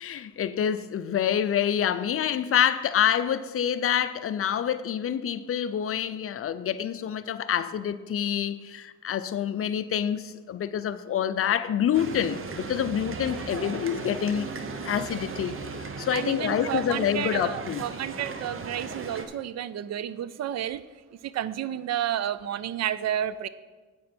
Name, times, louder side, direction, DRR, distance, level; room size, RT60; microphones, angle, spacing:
voice 1, 0.0-14.5 14.8-17.8, left 9 dB, 50° left, 0.6 m, -27 dB
sound 1, 11.9-19.2, right 4 dB, 45° right, 1.1 m, -37 dB
voice 2, 16.1-20.8 21.2-23.5, right 10 dB, 60° right, 0.5 m, -31 dB
9.3 x 8.5 x 4.4 m
cardioid pair, 90°, 30 cm